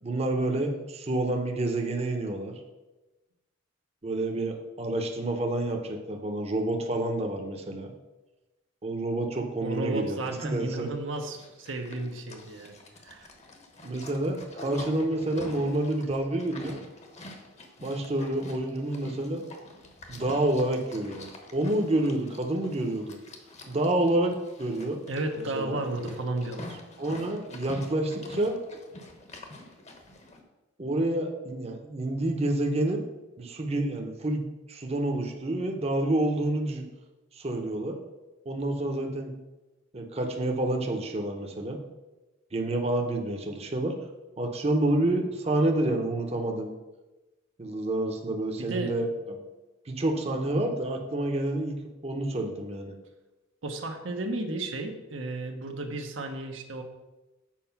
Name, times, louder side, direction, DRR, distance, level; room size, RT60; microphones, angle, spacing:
voice 1, 0.0-2.6 4.0-7.9 8.8-10.9 13.8-16.8 17.8-19.5 20.1-23.2 23.7-25.0 25.5-25.8 27.0-28.6 30.8-33.0 33.4-36.8 37.3-38.0 38.4-39.3 39.9-41.8 42.5-44.0 44.4-46.7 47.6-49.4 49.9-51.7 52.0-52.9, right 1 dB, 35° right, 3 dB, 0.8 m, -28 dB
voice 2, 9.6-12.8 13.0-13.3 25.1-26.8 48.6-48.9 53.6-56.8, right 2 dB, 80° right, 4 dB, 1.0 m, -33 dB
Livestock farm animals working animals, 11.1-30.4, left 2 dB, 35° left, 1.1 m, -46 dB
7.5 x 4.9 x 5.8 m, 1.1 s
head